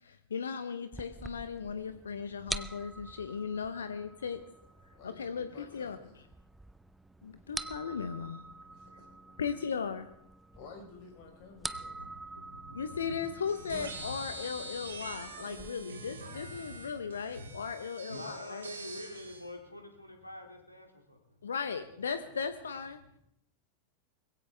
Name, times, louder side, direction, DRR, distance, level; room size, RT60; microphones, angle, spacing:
voice 1, 0.0-4.4 5.0-6.0 7.2-8.4 9.4-10.1 12.7-18.7 21.4-23.0, left 6 dB, 70° left, 0.9 m, -37 dB
sound 1, 0.9-15.7, right 2 dB, 5° right, 0.7 m, -46 dB
voice 2, 4.9-6.2 8.7-9.4 10.5-12.0, left 4 dB, 45° left, 4.5 m, -53 dB
voice 3, 11.7-13.2 13.6-14.3 15.9-17.0 17.3-17.6 18.1-21.4 23.0-23.2, left 1 dB, 85° left, 2.5 m, -47 dB
sound 2, 13.5-19.5, right 3 dB, 70° right, 2.6 m, -45 dB
21.5 x 16.0 x 3.4 m
figure-of-eight pair, 90°, 0 cm